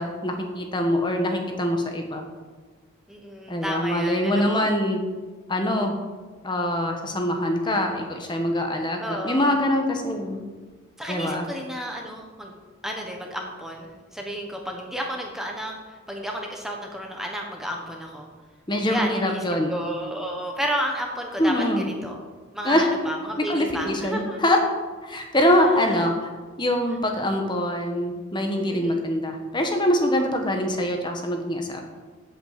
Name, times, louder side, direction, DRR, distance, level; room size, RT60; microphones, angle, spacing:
voice 1, 0.0-2.3 3.5-5.0 5.5-5.9 6.4-10.4 11.1-11.4 18.7-19.7 21.4-21.9 22.6-22.8 23.4-24.6 25.0-26.3 26.6-31.8, left 1 dB, 20° left, 3 dB, 1.2 m, -24 dB
voice 2, 3.1-4.7 9.0-9.6 11.0-18.3 18.8-22.2 22.5-24.4 25.8-26.0 28.6-29.0, equal, ahead, 0 dB, 1.1 m, -32 dB
8.2 x 8.1 x 7.5 m, 1.4 s
head